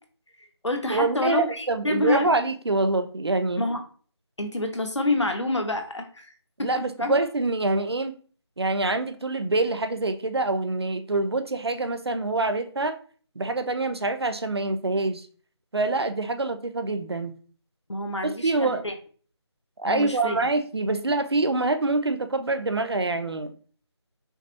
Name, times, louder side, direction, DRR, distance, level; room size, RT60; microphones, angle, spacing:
voice 1, 0.4-2.3 3.6-3.8 4.4-6.3 6.6-6.7 7.0-7.2 17.9-18.9 19.8-20.4, left 2 dB, 80° left, 1.1 m, -27 dB
voice 2, 0.9-3.6 6.6-8.1 8.6-13.0 13.4-15.3 15.7-17.4 18.2-18.9 19.8-23.5, right 2 dB, 60° right, 0.7 m, -25 dB
5.7 x 3.1 x 2.7 m
figure-of-eight pair, 160°, 15 cm